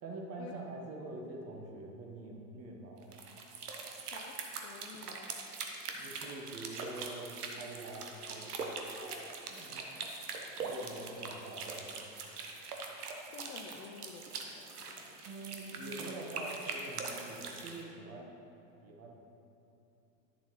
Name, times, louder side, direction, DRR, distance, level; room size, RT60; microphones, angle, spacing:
voice 1, 0.0-3.2 5.9-9.9 10.6-12.1 15.2-18.3 18.8-19.1, right 2 dB, 30° right, 0 dB, 1.3 m, -45 dB
sound 1, 3.0-17.8, right 4 dB, 70° right, 1.1 m, -42 dB
voice 2, 4.1-5.4 13.3-15.2, left 6 dB, 30° left, 2 dB, 0.4 m, -51 dB
11.0 x 7.0 x 3.2 m, 2.8 s
figure-of-eight pair, 90°, 47 cm